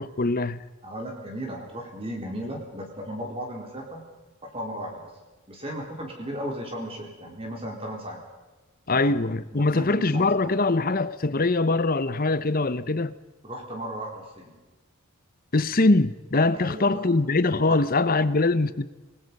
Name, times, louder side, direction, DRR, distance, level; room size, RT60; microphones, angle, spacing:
voice 1, 0.0-0.7 8.9-13.1 15.5-18.8, left 2 dB, 40° left, 0.9 m, -23 dB
voice 2, 0.8-4.0 4.4-5.1 5.5-8.2 8.9-10.3 13.4-14.6 16.6-17.1 17.7-17.8, equal, 25° right, 4.0 m, -36 dB
27.5 x 20.5 x 5.4 m
head